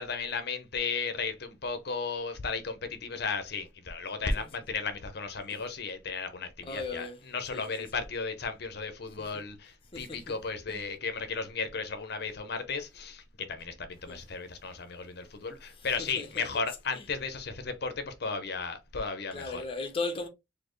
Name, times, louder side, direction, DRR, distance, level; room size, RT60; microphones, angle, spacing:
voice 1, 0.0-13.2 13.5-19.6, left 4 dB, 60° left, 0.7 m, -35 dB
voice 2, 6.6-7.2 7.5-7.9 9.9-10.4 10.7-10.8 14.1-14.2 15.8-16.5 16.9-17.1 19.3-20.3, left 3 dB, 30° left, 0.8 m, -37 dB
4.3 x 2.7 x 3.1 m
head